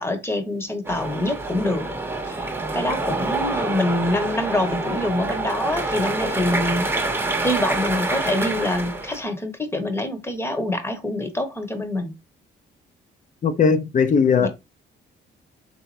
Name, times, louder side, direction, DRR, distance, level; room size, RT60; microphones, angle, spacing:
voice 1, 0.0-1.9 2.3-12.1 14.4-14.5, left 1 dB, 10° left, 1.0 m, -26 dB
sound 1, 0.8-9.2, right 2 dB, 10° right, 0.9 m, -27 dB
voice 2, 13.4-14.5, left 5 dB, 40° left, 0.7 m, -18 dB
4.1 x 3.4 x 3.1 m
cardioid pair, 90°, 20 cm